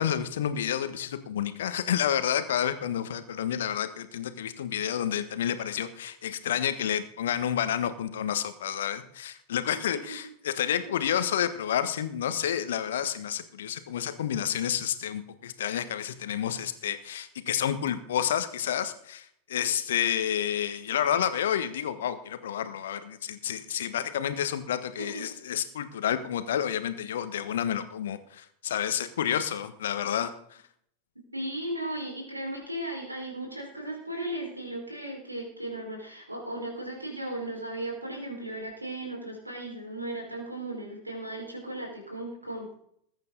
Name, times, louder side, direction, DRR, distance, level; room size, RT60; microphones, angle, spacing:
voice 1, 0.0-30.6, left 9 dB, 60° left, 11 dB, 1.4 m, -30 dB
voice 2, 31.3-42.7, right 1 dB, 85° right, -1 dB, 5.1 m, -36 dB
20.5 x 9.0 x 4.1 m, 0.68 s
figure-of-eight pair, 90°, 0 cm